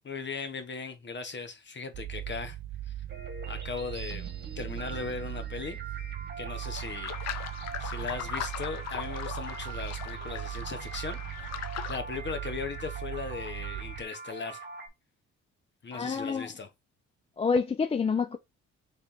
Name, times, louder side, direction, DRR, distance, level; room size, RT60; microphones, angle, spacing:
voice 1, 0.0-2.6 2.9-3.0 3.5-4.3 4.6-5.8 6.4-11.2 11.9-14.6 15.8-16.7, left 5 dB, 40° left, 1.2 m, -38 dB
sound 1, 1.9-14.0, right 13 dB, 65° right, 0.5 m, -39 dB
sound 2, 3.1-14.9, right 3 dB, 35° right, 1.7 m, -43 dB
sound 3, 6.7-12.0, left 9 dB, 60° left, 0.7 m, -39 dB
voice 2, 15.9-16.5 17.4-18.4, left 5 dB, 20° left, 0.3 m, -27 dB
3.4 x 3.4 x 4.3 m
cardioid pair, 90°, 30 cm